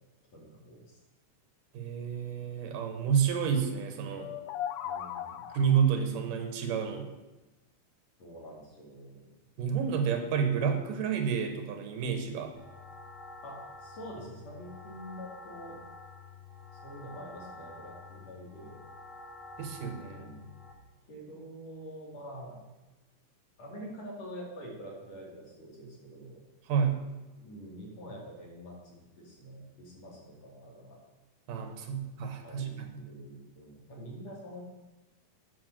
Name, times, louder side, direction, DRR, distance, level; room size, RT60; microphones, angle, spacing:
voice 1, 0.3-1.0 4.8-5.5 8.2-9.3 13.4-15.8 16.8-18.8 20.0-20.5 21.1-22.7 23.6-26.4 27.3-31.0 31.9-32.0 32.4-34.6, equal, 50° left, -2 dB, 3.3 m, -46 dB
voice 2, 1.7-4.3 5.5-7.1 9.6-12.5 19.6-20.3 26.7-27.0 31.5-32.9, right 7 dB, 75° right, 5 dB, 2.7 m, -29 dB
sound 1, 4.1-5.9, left 10 dB, 80° left, 1.8 m, -38 dB
sound 2, 12.5-20.7, left 3 dB, 35° left, 0.7 m, -49 dB
9.0 x 6.9 x 6.4 m, 1.1 s
omnidirectional pair, 3.9 m